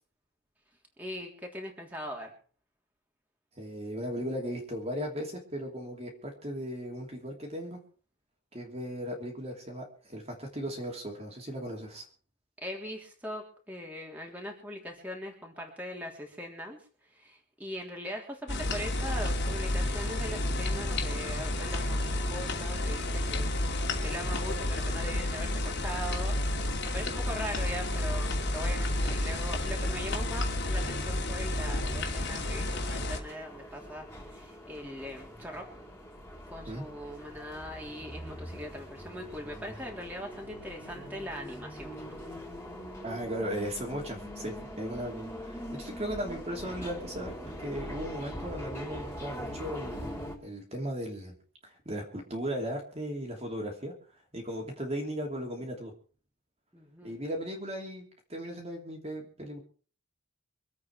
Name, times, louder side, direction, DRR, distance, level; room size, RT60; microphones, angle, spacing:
voice 1, 1.0-2.3 12.6-16.8 17.1-35.7 36.5-42.0 56.7-57.2, equal, 5° right, 0 dB, 3.2 m, -41 dB
voice 2, 3.6-7.8 8.5-12.0 36.7-36.8 43.0-47.3 47.6-51.3 51.6-53.9 54.3-55.9 57.0-58.0 58.3-59.6, equal, 30° right, 0 dB, 3.0 m, -37 dB
sound 1, 18.5-33.2, left 1 dB, 50° left, 2.7 m, -31 dB
sound 2, 31.8-50.4, equal, 10° left, 4.0 m, -43 dB
25.0 x 8.5 x 4.7 m, 0.42 s
head